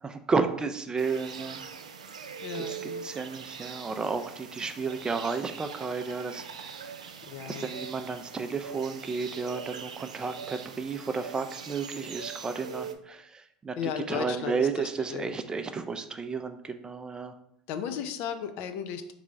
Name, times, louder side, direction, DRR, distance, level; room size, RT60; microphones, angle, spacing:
voice 1, 0.0-1.6 2.5-2.8 3.0-6.7 7.5-17.3, right 4 dB, 20° right, 8 dB, 0.4 m, -32 dB
sound 1, 1.0-13.0, right 6 dB, 85° right, 0.3 m, -42 dB
voice 2, 2.4-3.1 7.2-7.7 13.8-15.4 17.7-19.1, left 7 dB, 55° left, 8 dB, 0.5 m, -35 dB
3.7 x 3.2 x 3.6 m, 0.72 s
hypercardioid pair, 80°, 4 cm